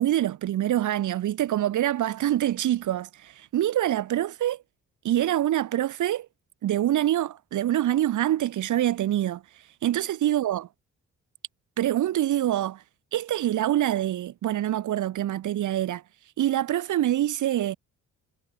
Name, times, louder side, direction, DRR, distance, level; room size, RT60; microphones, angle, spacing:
voice 1, 0.0-4.6 5.0-6.3 6.6-9.4 9.8-10.7 11.8-12.8 13.1-16.0 16.4-17.8, right 12 dB, 75° right, 7.5 m, -25 dB
cardioid pair, 90°, 30 cm